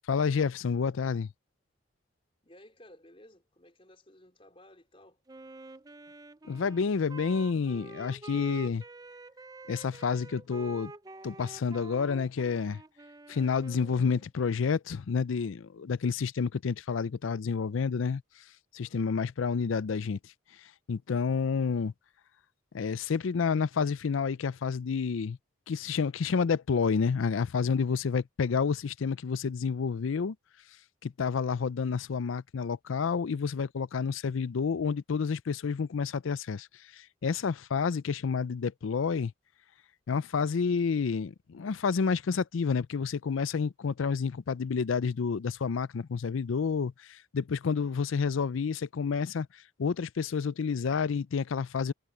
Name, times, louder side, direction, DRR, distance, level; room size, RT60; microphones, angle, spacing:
voice 1, 0.1-1.3 6.4-8.8 9.7-10.9 11.2-12.8 13.3-21.9 22.7-25.4 25.7-30.4 31.0-39.3 40.1-51.9, left 5 dB, 80° left, 0.5 m, -29 dB
voice 2, 2.4-5.2 18.8-19.2, left 1 dB, 30° left, 4.4 m, -56 dB
Wind instrument woodwind instrument, 5.3-14.3, right 3 dB, 20° right, 0.5 m, -48 dB
head